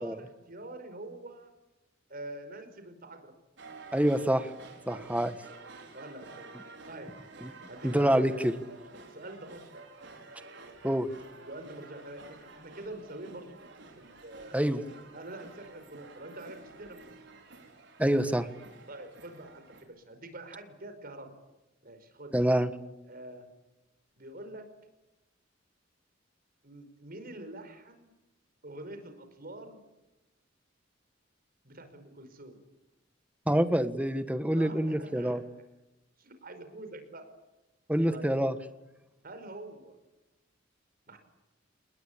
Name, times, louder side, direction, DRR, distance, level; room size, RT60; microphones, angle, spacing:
voice 1, 0.0-1.5 2.1-3.3 4.9-5.3 5.9-6.6 6.9-7.1 7.7-8.6 9.1-9.9 11.4-14.7 15.1-17.1 18.9-21.3 21.8-22.3 23.1-23.5 24.2-24.6 26.6-28.1 28.6-29.8 31.6-32.6 34.5-35.4 36.2-37.3 38.1-38.3 39.2-40.0 41.1-41.2, right 1 dB, 50° right, 8 dB, 5.1 m, -45 dB
sound 1, 3.6-19.8, right 3 dB, 65° right, 5.8 m, -50 dB
voice 2, 3.9-4.5 4.9-5.3 7.4-7.5 7.8-8.6 10.8-11.1 14.5-14.8 18.0-18.5 22.3-22.7 33.5-35.4 37.9-38.5, right 1 dB, 5° right, 11 dB, 1.5 m, -26 dB
28.0 x 20.5 x 8.7 m, 0.98 s
head